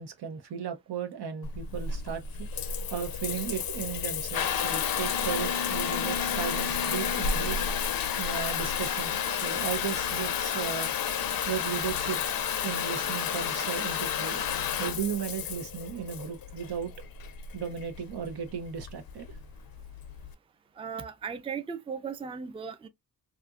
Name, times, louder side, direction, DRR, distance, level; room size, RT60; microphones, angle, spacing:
voice 1, 0.0-2.6 2.9-7.6 8.2-10.9 11.5-12.2 12.6-14.4 14.7-16.9 17.5-19.4, right 8 dB, 85° right, 0.7 m, -35 dB
Water tap faucet / Bathtub (filling or washing) / Trickle dribble, 1.4-20.3, left 7 dB, 65° left, 0.5 m, -31 dB
voice 2, 20.8-22.9, right 6 dB, 15° right, 0.3 m, -37 dB
2.7 x 2.4 x 2.3 m
wide cardioid pair, 80°, 38 cm